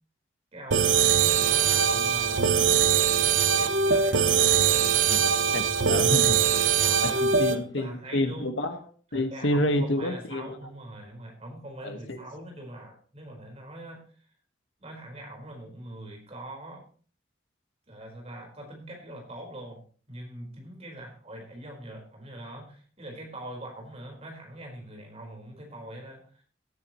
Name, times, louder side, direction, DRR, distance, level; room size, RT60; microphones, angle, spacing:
voice 1, 0.5-2.7 3.5-4.9 6.4-8.5 9.1-14.1 14.8-16.8 17.9-26.4, right 1 dB, 35° right, 1 dB, 4.7 m, -43 dB
sound 1, 0.7-7.6, right 7 dB, 80° right, 0.9 m, -22 dB
voice 2, 5.0-6.4 7.0-8.8 9.1-10.5 11.8-12.2, left 1 dB, 80° left, 7 dB, 1.6 m, -29 dB
18.0 x 10.5 x 3.1 m, 0.41 s
head